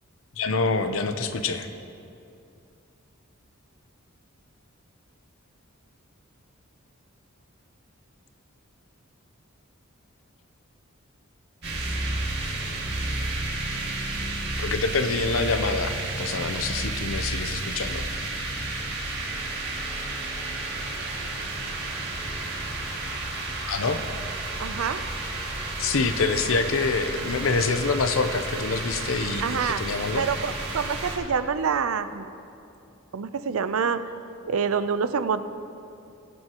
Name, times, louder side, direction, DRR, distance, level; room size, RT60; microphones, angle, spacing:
voice 1, 0.4-1.7 14.6-18.1 23.6-24.0 25.8-30.3, left 4 dB, 75° left, 9 dB, 0.7 m, -26 dB
sound 1, 11.6-31.2, right 2 dB, 55° right, 2.2 m, -31 dB
voice 2, 24.6-25.0 29.4-29.8 30.2-32.3 33.1-34.0 34.5-35.4, right 6 dB, 85° right, 12 dB, 0.5 m, -26 dB
22.0 x 7.8 x 3.0 m, 2.6 s
head